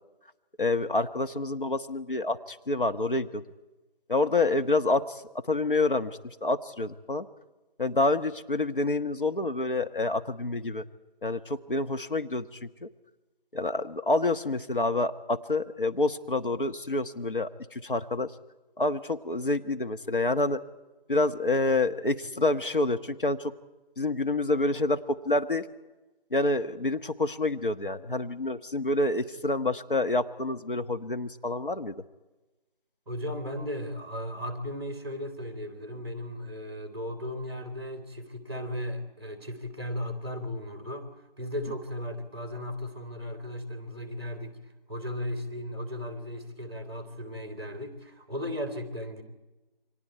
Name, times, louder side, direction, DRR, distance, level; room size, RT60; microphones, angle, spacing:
voice 1, 0.6-3.4 4.1-5.2 5.5-7.3 7.8-10.8 11.2-12.9 13.5-18.3 18.8-20.6 21.1-23.5 24.0-25.7 26.3-31.9, left 2 dB, 60° left, 9 dB, 1.3 m, -28 dB
voice 2, 33.1-41.1 41.4-44.6 44.9-49.2, left 1 dB, 25° right, 7 dB, 2.8 m, -36 dB
29.0 x 24.5 x 4.6 m, 1.1 s
figure-of-eight pair, 170°, 30 cm